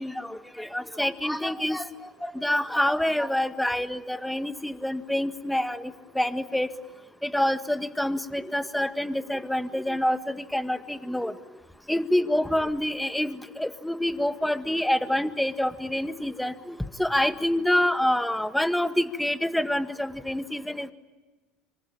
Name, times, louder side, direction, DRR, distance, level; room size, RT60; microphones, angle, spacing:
voice 1, 0.0-1.8 2.2-6.7 7.2-11.3 11.9-20.9, left 1 dB, 5° left, 11 dB, 1.7 m, -27 dB
26.5 x 25.0 x 8.9 m, 1.3 s
hypercardioid pair, 75°, 0 cm